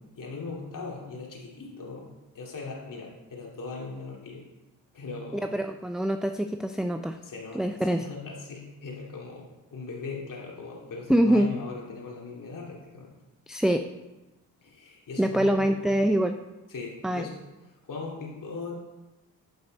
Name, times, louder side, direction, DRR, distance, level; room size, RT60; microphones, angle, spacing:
voice 1, 0.2-2.1 2.3-4.4 4.9-5.5 7.2-7.6 7.9-13.1 14.6-15.9 16.7-17.4 17.8-18.7, left 4 dB, 55° left, -3 dB, 2.5 m, -39 dB
voice 2, 5.4-7.2 7.5-8.1 11.1-11.5 13.5-13.8 15.2-16.4 17.0-17.2, right 1 dB, ahead, 7 dB, 0.5 m, -24 dB
8.7 x 5.4 x 5.2 m, 1.1 s
supercardioid pair, 55°, 40 cm